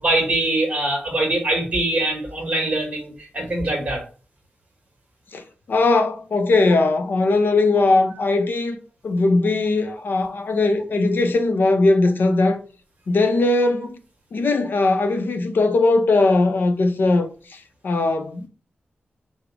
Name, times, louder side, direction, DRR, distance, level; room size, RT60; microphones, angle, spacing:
voice 1, 0.0-4.0, right 1 dB, 35° right, 1.5 m, -23 dB
voice 2, 5.3-8.8 9.0-12.6 13.1-14.0 14.3-18.5, left 2 dB, 60° left, 0.6 m, -19 dB
5.0 x 2.1 x 4.6 m
wide cardioid pair, 175°, 4 cm